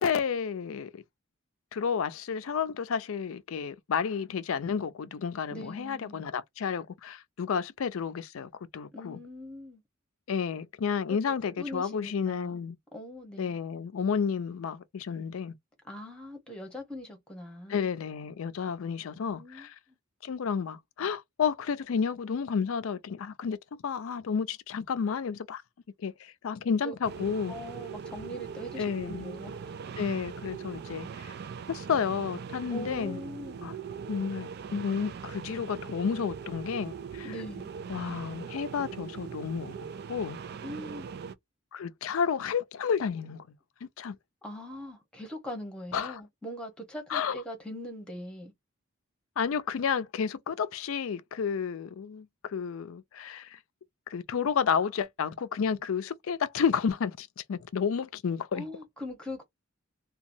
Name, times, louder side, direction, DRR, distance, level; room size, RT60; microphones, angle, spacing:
voice 1, 0.0-1.0 1.7-9.2 10.3-12.8 13.4-15.5 17.7-19.7 20.2-23.6 23.8-25.6 26.0-27.5 28.8-29.4 30.0-31.3 31.7-33.2 33.6-33.7 34.1-37.3 37.9-39.7 40.1-40.4 41.7-43.5 43.8-44.2 45.9-46.2 47.1-47.4 49.4-53.6 54.1-58.7, left 6 dB, 75° left, 0.4 m, -31 dB
voice 2, 5.5-6.2 8.9-9.8 11.4-12.6 12.9-13.6 15.8-17.9 19.2-20.0 26.8-26.9 27.5-29.7 32.7-33.6 37.2-37.7 40.6-41.1 44.4-48.5 58.5-59.4, equal, 5° left, 0.9 m, -41 dB
sound 1, 27.0-41.3, right 6 dB, 50° right, 0.3 m, -41 dB
2.9 x 2.2 x 2.6 m
head